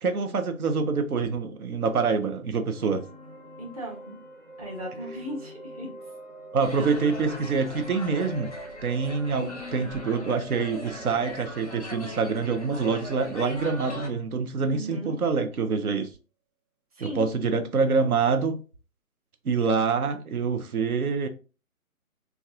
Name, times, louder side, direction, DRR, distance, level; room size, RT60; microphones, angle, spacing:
voice 1, 0.0-3.0 6.5-8.5 8.8-16.1 17.0-18.6 19.4-21.3, right 5 dB, 80° right, 0.7 m, -26 dB
sound 1, 2.7-14.4, right 2 dB, 60° right, 1.3 m, -44 dB
voice 2, 3.6-4.2 4.6-5.9 14.7-15.2 16.9-17.3, equal, 25° right, 0.7 m, -37 dB
sound 2, 6.6-14.1, left 2 dB, 30° left, 0.5 m, -41 dB
4.0 x 2.3 x 2.3 m
figure-of-eight pair, 155°, 43 cm